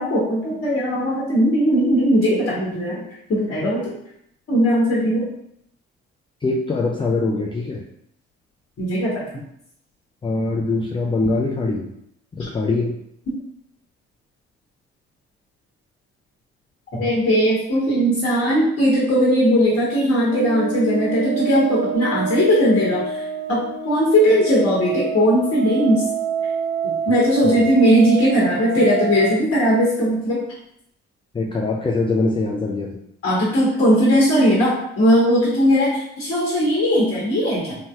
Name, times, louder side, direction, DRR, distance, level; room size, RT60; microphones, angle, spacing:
voice 1, 0.0-3.0 3.3-3.8 4.5-5.3 8.8-9.1 16.9-23.2 23.5-26.0 26.8-30.4 33.2-37.8, equal, 45° left, -5 dB, 1.2 m, -18 dB
voice 2, 6.4-7.9 10.2-11.9 12.3-13.0 27.4-27.7 31.3-33.0, left 3 dB, 15° left, -1 dB, 0.4 m, -23 dB
sound 1, 20.3-29.4, right 5 dB, 75° right, 0.5 m, -27 dB
3.2 x 2.7 x 2.3 m, 0.72 s
hypercardioid pair, 40°, 32 cm